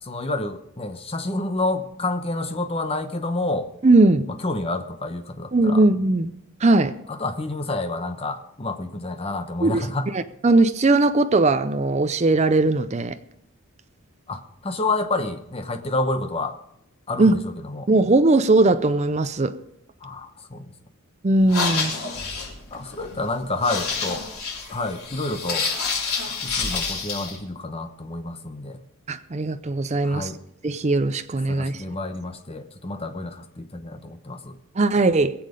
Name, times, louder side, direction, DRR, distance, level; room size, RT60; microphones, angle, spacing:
voice 1, 0.0-3.7 4.3-5.8 7.1-10.1 14.3-16.6 17.1-17.9 20.0-20.7 22.7-24.3 24.7-25.7 26.3-28.8 30.0-30.4 31.5-34.6, left 2 dB, 25° left, 0.9 m, -29 dB
voice 2, 3.8-4.3 5.5-6.3 6.6-7.0 9.6-9.8 10.1-13.2 17.2-17.4 17.9-19.6 21.2-22.0 29.1-30.3 30.6-31.8 34.8-35.3, right 2 dB, 30° right, 0.5 m, -19 dB
sound 1, 21.4-27.4, left 4 dB, 90° left, 3.5 m, -28 dB
21.0 x 7.5 x 5.1 m
head